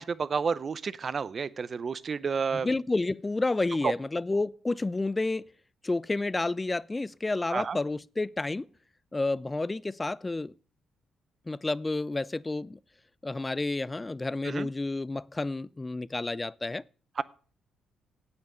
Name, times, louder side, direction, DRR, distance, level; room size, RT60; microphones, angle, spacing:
voice 1, 0.0-2.7 7.5-7.8 14.4-14.7 17.2-17.3, right 5 dB, 40° right, 0.6 m, -31 dB
voice 2, 2.5-5.5 5.8-8.7 9.1-10.5 11.5-12.8 13.2-16.8, left 2 dB, 20° left, 0.4 m, -30 dB
8.8 x 8.5 x 6.7 m
cardioid pair, 90°, 0 cm